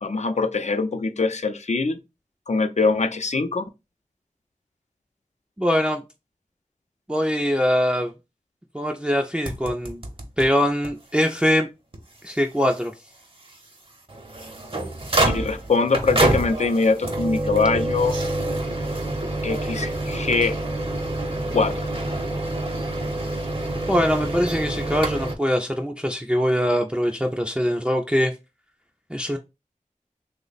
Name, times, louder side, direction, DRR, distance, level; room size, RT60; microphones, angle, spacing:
voice 1, 0.0-2.0 2.5-3.7 15.3-18.2 19.4-20.6 21.5-21.9, left 4 dB, 60° left, 0.4 m, -23 dB
voice 2, 5.6-6.0 7.1-8.1 8.7-10.0 10.4-11.7 12.2-12.9 23.9-28.3 29.1-29.4, equal, 10° right, 0.4 m, -22 dB
sound 1, 9.5-10.5 10.8-10.9 11.2-11.3 11.9-12.0 14.1-25.3, right 2 dB, 40° right, 0.7 m, -26 dB
3.1 x 2.1 x 3.9 m
wide cardioid pair, 40°, 13 cm